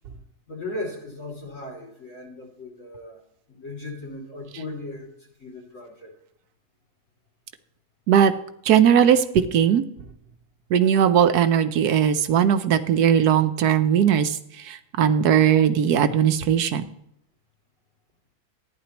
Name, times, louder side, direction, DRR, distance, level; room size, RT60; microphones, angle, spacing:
voice 1, 0.5-3.2 3.5-6.1, left 2 dB, 50° left, -1 dB, 3.3 m, -37 dB
voice 2, 8.6-9.8 10.7-16.8, right 9 dB, 75° right, 10 dB, 1.2 m, -19 dB
14.5 x 10.5 x 3.0 m, 0.74 s
omnidirectional pair, 1.7 m